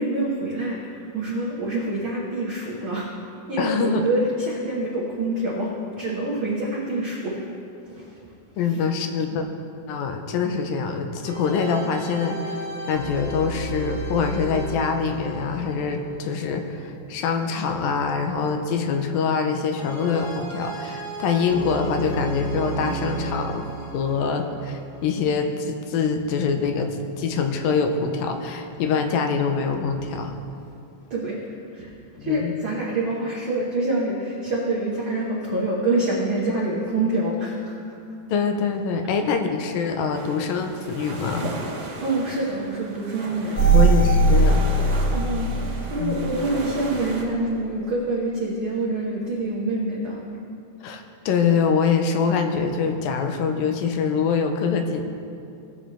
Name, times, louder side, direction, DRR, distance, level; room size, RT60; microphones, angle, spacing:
voice 1, 0.0-3.1 3.5-7.4 7.8-8.3 8.7-8.8 31.1-31.9 32.2-38.0 42.0-43.8 45.1-45.6 45.9-50.2, right 2 dB, 85° right, -5 dB, 1.1 m, -26 dB
voice 2, 3.6-4.1 8.6-9.5 9.9-30.3 32.2-32.5 38.3-41.5 43.7-45.0 46.0-46.3 50.8-55.0, left 5 dB, 85° left, 5 dB, 2.4 m, -24 dB
sound 1, 11.2-17.3 19.8-25.2, right 2 dB, 60° left, 1.2 m, -34 dB
sound 2, 40.1-47.2, right 2 dB, 55° right, 2.1 m, -37 dB
sound 3, 43.6-46.4 46.9-47.0, right 2 dB, 30° left, 1.3 m, -19 dB
18.0 x 7.6 x 3.4 m, 2.6 s
omnidirectional pair, 4.2 m